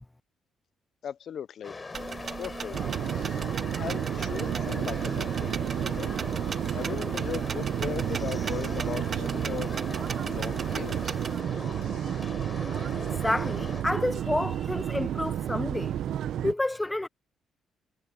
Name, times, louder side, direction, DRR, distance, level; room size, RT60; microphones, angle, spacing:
voice 1, 1.0-1.8 2.4-2.8 3.8-6.1 6.7-9.7 10.2-11.2, left 9 dB, 60° left, 0.6 m, -38 dB
sound 1, 1.6-13.8, left 3 dB, 30° left, 5.8 m, -41 dB
sound 2, 1.9-11.4, right 5 dB, 45° right, 1.9 m, -37 dB
sound 3, 2.7-16.5, right 10 dB, 75° right, 0.8 m, -31 dB
voice 2, 13.2-15.9 16.4-17.1, left 1 dB, 10° left, 0.8 m, -29 dB
cardioid pair, 90°, 0 cm